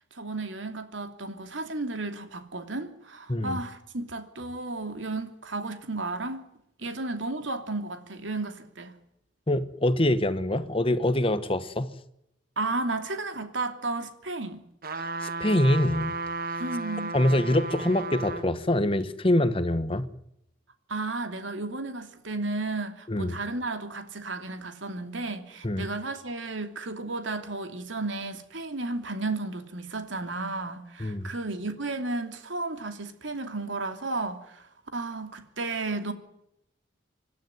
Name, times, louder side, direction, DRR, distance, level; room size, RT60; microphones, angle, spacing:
voice 1, 0.1-6.4 6.8-8.9 12.6-14.6 16.6-17.2 20.9-36.1, right 2 dB, 75° right, 2.9 m, -33 dB
voice 2, 9.5-11.9 15.2-16.1 17.1-20.1 23.1-23.3 25.6-25.9 31.0-31.3, left 1 dB, 30° left, 1.2 m, -24 dB
sound 1, 14.8-18.5 19.0-19.1, right 3 dB, 50° right, 1.5 m, -34 dB
26.5 x 12.0 x 9.5 m
head